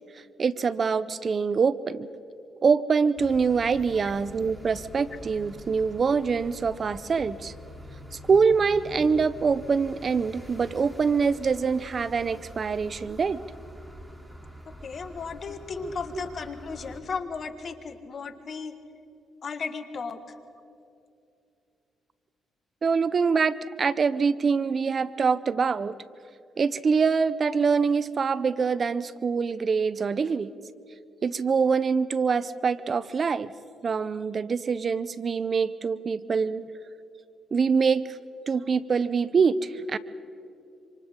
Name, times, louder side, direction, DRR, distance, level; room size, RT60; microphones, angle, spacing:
voice 1, 0.4-2.1 2.6-7.5 8.3-13.4 15.8-16.2 22.8-25.9 26.6-30.5 31.2-33.5 33.8-36.7 37.5-38.2 38.5-40.0, right 5 dB, 50° right, 17 dB, 0.6 m, -24 dB
sound 1, 3.2-17.0, equal, 15° right, 3.3 m, -45 dB
voice 2, 14.8-18.7 19.4-20.2, left 5 dB, 55° left, 9 dB, 1.7 m, -35 dB
26.5 x 26.0 x 3.8 m, 2.5 s
supercardioid pair, 60°, 0 cm